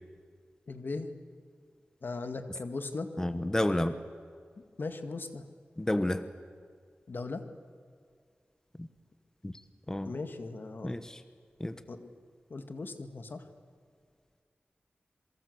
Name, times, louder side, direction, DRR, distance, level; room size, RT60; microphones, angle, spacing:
voice 1, 0.7-1.1 2.0-3.1 4.8-5.4 7.1-7.4 10.1-11.0 11.9-12.1 12.5-13.4, left 3 dB, 65° left, 8 dB, 2.0 m, -38 dB
voice 2, 3.2-3.9 5.8-6.2 8.8-8.9 9.4-9.5 9.9-10.1 10.8-11.2 11.6-11.8, left 1 dB, 15° left, 10 dB, 1.2 m, -30 dB
27.5 x 23.5 x 8.1 m, 2.1 s
wide cardioid pair, 75°, 4 cm